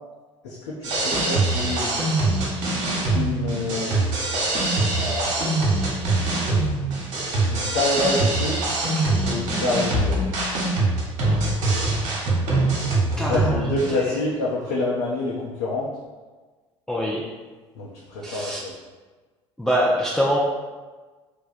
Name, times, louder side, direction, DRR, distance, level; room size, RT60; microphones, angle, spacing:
voice 1, 0.4-1.9 3.1-4.0 4.9-5.6 7.5-8.6 9.2-10.2 13.3-15.9 17.8-18.7, left 2 dB, 65° left, -5 dB, 0.6 m, -27 dB
sound 1, 0.8-13.9, right 2 dB, 55° right, 1.0 m, -23 dB
voice 2, 12.9-14.2 16.9-17.3 18.2-18.6 19.6-20.4, equal, 5° left, -3 dB, 0.4 m, -25 dB
3.3 x 2.2 x 4.0 m, 1.3 s
figure-of-eight pair, 65°, 16 cm